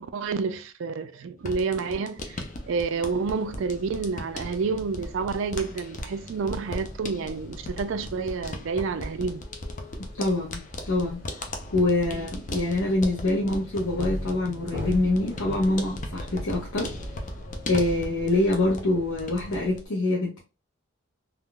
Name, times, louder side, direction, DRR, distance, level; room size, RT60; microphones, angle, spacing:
voice 1, 0.0-9.4 12.1-12.2, right 4 dB, 60° right, 0.4 m, -29 dB
sound 1, 1.4-18.9 19.2-19.9, left 2 dB, 35° left, 0.5 m, -38 dB
sound 2, 2.2-19.8, equal, 65° left, 1.2 m, -41 dB
voice 2, 10.2-11.2 11.7-16.9 17.7-20.4, left 2 dB, 80° left, 0.8 m, -25 dB
3.5 x 2.4 x 2.2 m
head